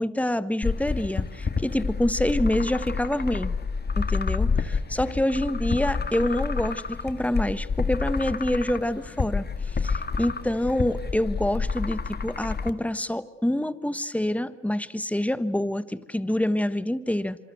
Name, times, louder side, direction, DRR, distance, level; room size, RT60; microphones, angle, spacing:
voice 1, 0.0-3.5 4.0-9.5 9.8-17.4, left 1 dB, 5° left, 13 dB, 1.4 m, -26 dB
sound 1, 0.6-12.7, left 5 dB, 35° left, 1.8 m, -29 dB
26.5 x 24.5 x 8.1 m, 1.2 s
cardioid pair, 90°, 30 cm